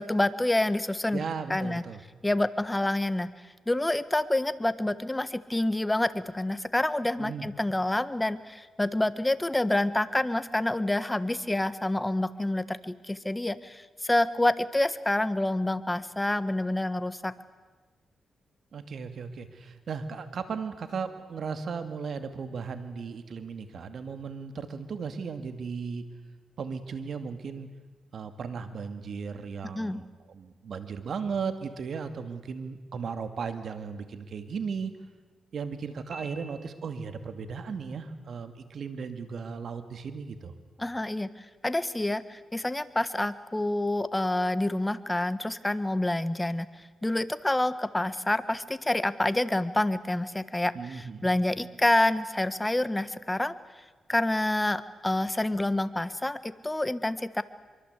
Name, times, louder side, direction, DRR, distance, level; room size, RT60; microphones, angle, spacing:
voice 1, 0.0-1.2 1.5-1.8 2.2-3.3 3.7-17.3 29.7-30.0 40.8-46.7 47.0-53.5 54.1-57.4, left 1 dB, 15° left, 14 dB, 1.4 m, -28 dB
voice 2, 1.1-2.0 7.2-7.5 18.7-26.0 26.6-27.7 28.1-34.9 35.5-40.5 50.7-51.2, right 5 dB, 65° right, 9 dB, 2.4 m, -36 dB
Piano, 36.1-37.2, right 1 dB, 30° right, 2.2 m, -48 dB
24.5 x 24.0 x 8.3 m, 1.3 s
cardioid pair, 75°, 0 cm